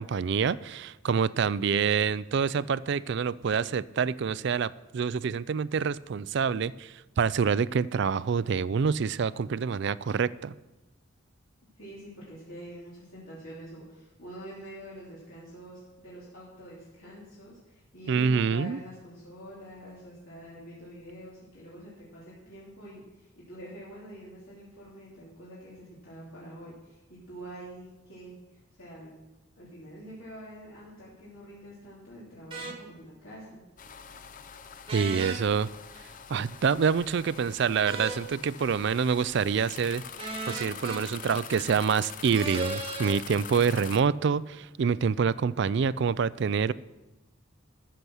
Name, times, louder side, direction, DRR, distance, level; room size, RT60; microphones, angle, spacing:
voice 1, 0.0-10.5 18.1-18.8 34.9-35.7 36.3-40.0 40.5-46.7, right 6 dB, 55° right, 18 dB, 0.3 m, -26 dB
voice 2, 11.8-29.1 29.5-33.6, equal, 70° left, -8 dB, 3.0 m, -46 dB
sound 1, 32.5-32.8 34.9-35.4 37.8-38.2 40.2-41.0 42.3-43.2, right 3 dB, 25° right, 1.2 m, -35 dB
sound 2, 33.8-44.0, left 7 dB, 40° left, 0.5 m, -44 dB
13.5 x 6.8 x 6.3 m, 1.0 s
head